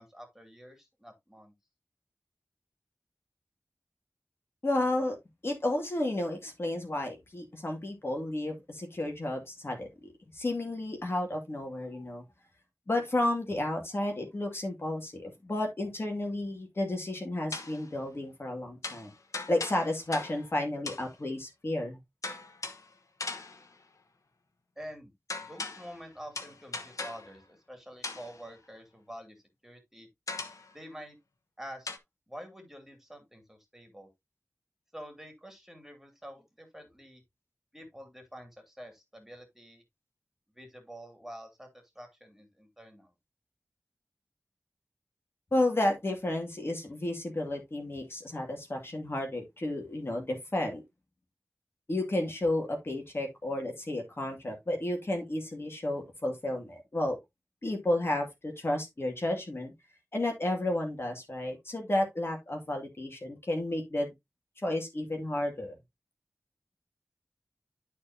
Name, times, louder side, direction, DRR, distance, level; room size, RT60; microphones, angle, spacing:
voice 1, 0.0-1.5 24.8-25.1 25.5-29.4 29.6-30.1 30.7-31.2 31.6-31.9 32.3-34.1 34.9-37.2 37.7-39.8 40.5-41.7 41.9-43.1, equal, 5° right, 2.9 m, -47 dB
voice 2, 4.6-5.2 5.4-12.2 12.9-19.1 19.5-22.0 45.5-50.8 51.9-57.2 57.6-59.7 60.1-64.1 64.6-65.7, left 1 dB, 45° left, 2.3 m, -32 dB
sound 1, 17.5-17.9 18.8-20.5 20.9-21.1 22.2-22.9 23.2-23.7 25.3-26.0 26.3-27.4 28.0-28.4 30.3-30.7 31.9-32.0, left 3 dB, 85° left, 1.2 m, -39 dB
11.5 x 4.4 x 2.7 m
wide cardioid pair, 55°, 5 cm